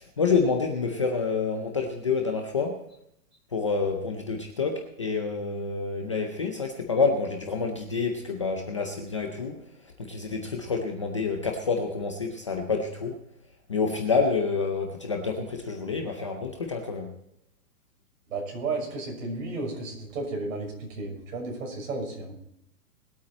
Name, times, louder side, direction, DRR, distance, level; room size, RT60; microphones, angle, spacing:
voice 1, 0.2-2.8 3.5-9.6 10.0-13.2 13.7-17.1, left 4 dB, 20° left, 2 dB, 0.5 m, -28 dB
voice 2, 18.3-22.3, right 3 dB, 55° right, 0 dB, 6.4 m, -33 dB
20.5 x 8.4 x 4.2 m, 0.79 s
hypercardioid pair, 170°, 47 cm